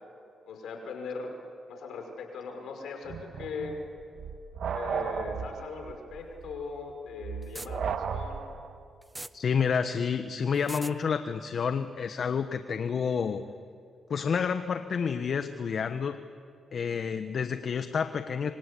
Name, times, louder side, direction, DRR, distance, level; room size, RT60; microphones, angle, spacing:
voice 1, 0.5-1.3 1.7-3.8 4.7-8.5, left 4 dB, 80° left, 4 dB, 5.6 m, -39 dB
sound 1, 3.1-8.8, right 7 dB, 70° right, 1.5 m, -35 dB
sound 2, 7.4-7.7 9.0-9.3 10.5-10.9, right 2 dB, 20° right, 1.0 m, -39 dB
voice 2, 9.3-13.4 14.1-16.2 16.7-18.5, left 6 dB, 60° left, 9 dB, 1.2 m, -29 dB
26.5 x 26.0 x 8.4 m, 2.6 s
supercardioid pair, 60°, 0 cm